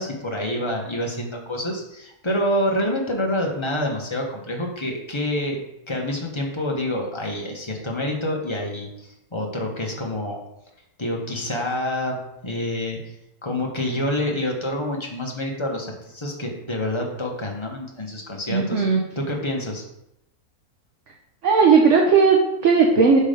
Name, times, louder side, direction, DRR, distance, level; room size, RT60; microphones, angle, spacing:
voice 1, 0.0-5.6 5.9-8.9 9.3-10.4 11.0-12.2 12.4-13.0 13.4-19.8, left 1 dB, 20° left, 0 dB, 1.2 m, -27 dB
voice 2, 18.5-19.0 21.4-23.2, right 5 dB, 60° right, 0 dB, 1.2 m, -16 dB
6.0 x 5.6 x 5.1 m, 0.84 s
omnidirectional pair, 1.6 m